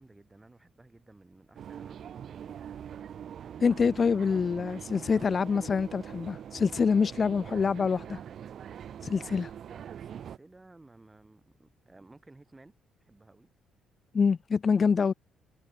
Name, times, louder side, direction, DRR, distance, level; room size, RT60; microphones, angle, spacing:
voice 1, 0.0-2.6 9.6-12.7 13.0-13.5, right 2 dB, 15° right, 3.5 m, -56 dB
sound 1, 1.6-10.4, right 9 dB, 60° right, 1.9 m, -43 dB
voice 2, 3.6-8.2 9.0-9.5 14.1-15.1, left 5 dB, 40° left, 0.4 m, -26 dB
cardioid pair, 90°, 0 cm